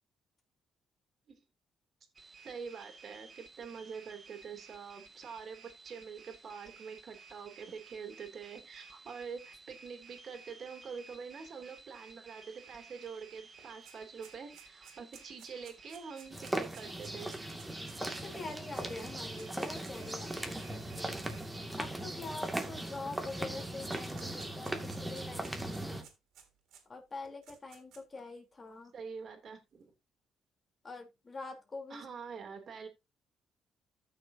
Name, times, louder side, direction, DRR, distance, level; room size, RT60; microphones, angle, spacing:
sound 1, 2.2-21.7, right 4 dB, 40° right, 2.7 m, -55 dB
voice 1, 2.4-17.4 24.3-24.4 28.9-29.8 31.9-32.9, right 6 dB, 55° right, 5 dB, 3.1 m, -46 dB
sound 2, 13.0-13.1 13.4-20.3 21.1-21.2 22.2-23.3 23.6-26.8 27.2-28.2, right 8 dB, 85° right, 3.3 m, -57 dB
sound 3, 16.3-26.0, right 1 dB, 10° right, 2.3 m, -39 dB
voice 2, 17.6-21.2 21.8-26.1 26.9-28.9 30.8-32.1, left 3 dB, 30° left, 3 dB, 3.7 m, -45 dB
14.5 x 6.6 x 2.8 m, 0.24 s
cardioid pair, 90°, 0 cm